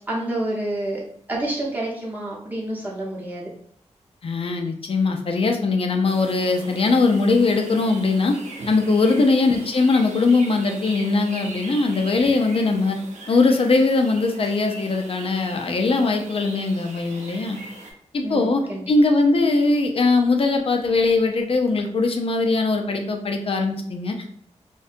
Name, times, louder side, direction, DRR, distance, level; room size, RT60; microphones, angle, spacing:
voice 1, 0.1-1.0 1.3-3.5 9.0-9.2 18.2-18.9, right 1 dB, 15° right, -5 dB, 0.8 m, -28 dB
voice 2, 4.2-8.3 8.7-13.0 13.3-17.6 18.1-18.6 18.9-24.3, left 3 dB, 50° left, 4 dB, 0.4 m, -20 dB
sound 1, 6.1-17.9, right 2 dB, 85° right, 0.5 m, -40 dB
2.6 x 2.2 x 2.5 m, 0.65 s
wide cardioid pair, 85°, 12 cm